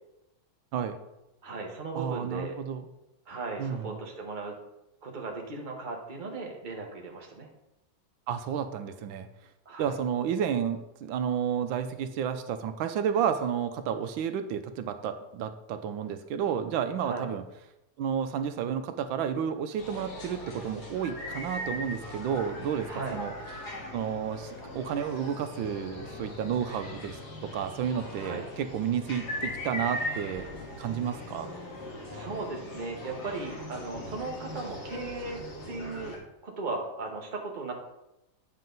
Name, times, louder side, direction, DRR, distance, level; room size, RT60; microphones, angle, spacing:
voice 1, 1.4-2.6 3.3-4.5 5.0-7.5 9.6-9.9 17.0-17.3 22.9-23.2 28.2-28.4 32.1-35.4 35.7-36.1 36.4-37.7, right 3 dB, 30° right, 1 dB, 1.3 m, -37 dB
voice 2, 1.9-2.9 3.6-3.9 8.3-9.3 9.8-17.4 18.0-23.3 23.9-30.5 30.8-31.5, right 8 dB, 85° right, 9 dB, 1.4 m, -31 dB
sound 1, 19.8-36.2, left 1 dB, 55° left, 2.5 m, -39 dB
9.2 x 6.6 x 4.0 m, 0.91 s
omnidirectional pair, 2.1 m